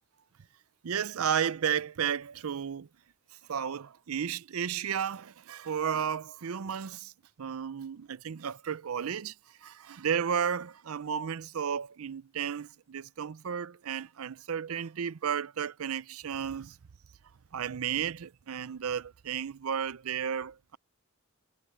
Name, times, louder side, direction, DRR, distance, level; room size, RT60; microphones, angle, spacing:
voice 1, 0.8-2.9 3.5-7.1 7.4-9.3 9.6-16.8 17.5-20.8, right 8 dB, 85° right, 0.5 m, -33 dB
head